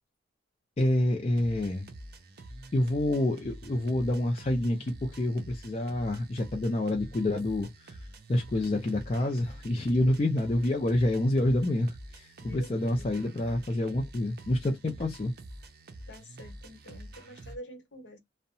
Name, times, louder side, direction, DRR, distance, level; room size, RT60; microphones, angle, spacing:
voice 1, 0.8-1.9 2.7-8.0 8.3-15.3, left 1 dB, 35° left, 0.4 m, -28 dB
sound 1, 1.3-17.6, right 1 dB, 55° right, 0.6 m, -47 dB
voice 2, 12.4-13.1 16.1-18.2, equal, 75° left, 1.0 m, -47 dB
2.7 x 2.1 x 2.6 m
head